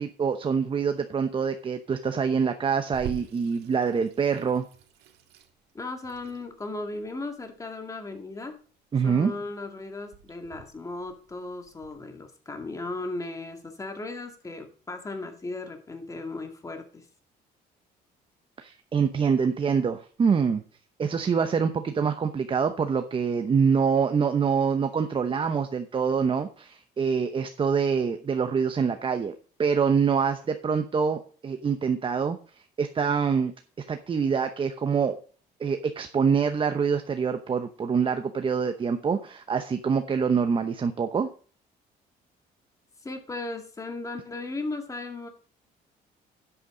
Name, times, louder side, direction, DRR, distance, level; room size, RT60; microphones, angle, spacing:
voice 1, 0.0-4.6 8.9-9.3 18.6-20.6 21.0-29.3 29.6-33.5 33.9-35.2 35.6-41.3, right 6 dB, 30° right, 8 dB, 0.8 m, -25 dB
Water tap faucet / Sink (filling or washing), 2.9-11.9, right 9 dB, 80° right, 1.7 m, -46 dB
voice 2, 5.7-8.6 9.0-17.1 43.0-45.3, left 2 dB, 20° left, 5 dB, 2.1 m, -36 dB
10.5 x 8.6 x 3.8 m, 0.40 s
cardioid pair, 110°, 17 cm